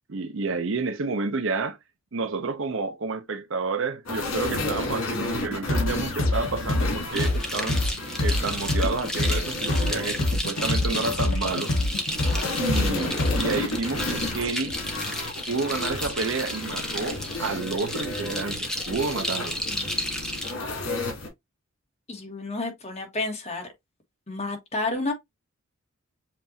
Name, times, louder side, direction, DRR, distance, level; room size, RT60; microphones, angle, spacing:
voice 1, 0.1-1.8 2.1-7.8 8.2-11.7 12.6-14.8 15.5-19.6, right 4 dB, 65° right, 0.6 m, -30 dB
sound 1, 4.1-21.3, left 2 dB, 90° left, 2.5 m, -32 dB
sound 2, 5.7-13.6, left 2 dB, 65° left, 0.9 m, -25 dB
sound 3, 7.1-20.5, equal, 5° left, 0.7 m, -33 dB
voice 2, 22.1-23.7 24.3-25.1, left 2 dB, 30° left, 1.5 m, -30 dB
7.4 x 2.6 x 2.7 m
head